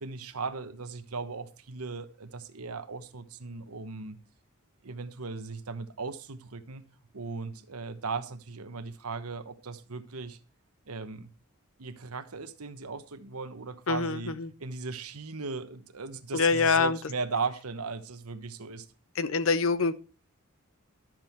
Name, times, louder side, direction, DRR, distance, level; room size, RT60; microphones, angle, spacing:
voice 1, 0.0-4.2 4.8-6.8 7.1-10.4 10.9-11.3 11.8-14.3 14.6-18.9, right 4 dB, 85° right, 1.1 m, -37 dB
voice 2, 13.9-14.5 16.3-17.0 19.1-20.0, left 4 dB, 65° left, 0.8 m, -25 dB
12.0 x 7.6 x 4.5 m
head